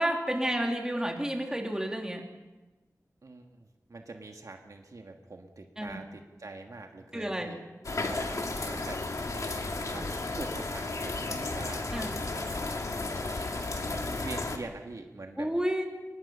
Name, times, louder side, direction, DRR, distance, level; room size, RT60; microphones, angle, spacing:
voice 1, 0.0-2.2 5.8-6.0 7.1-7.5 11.9-12.1 15.4-15.8, equal, 10° right, 1 dB, 3.1 m, -30 dB
voice 2, 3.2-7.6 8.1-8.2 8.5-9.0 9.9-11.9 13.8-15.5, right 3 dB, 65° right, 3 dB, 1.7 m, -44 dB
sound 1, 7.8-14.6, left 2 dB, 60° left, 2.2 m, -33 dB
23.0 x 20.0 x 5.6 m, 1.1 s
wide cardioid pair, 80°, 6 cm